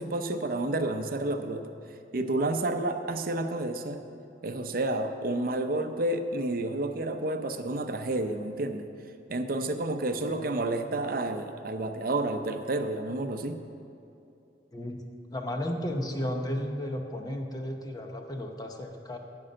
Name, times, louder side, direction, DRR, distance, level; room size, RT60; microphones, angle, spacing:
voice 1, 0.0-1.7 2.1-4.0 4.4-8.8 9.3-13.6, right 2 dB, 55° right, 7 dB, 0.7 m, -30 dB
voice 2, 14.7-15.0 15.3-19.2, left 1 dB, 20° left, 3 dB, 0.9 m, -34 dB
12.5 x 5.4 x 8.8 m, 2.7 s
head